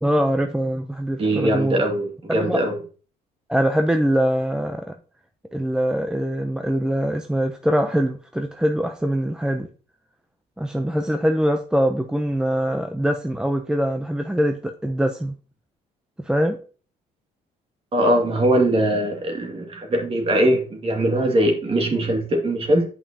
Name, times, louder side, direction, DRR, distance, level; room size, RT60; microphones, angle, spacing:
voice 1, 0.0-1.8 2.3-2.6 3.5-4.9 5.5-9.7 10.6-15.4 16.2-16.6, equal, 5° right, 6 dB, 0.6 m, -23 dB
voice 2, 1.2-2.8 17.9-22.9, right 1 dB, 35° right, 2 dB, 2.2 m, -21 dB
8.7 x 5.4 x 2.8 m, 0.38 s
cardioid pair, 110°, 17 cm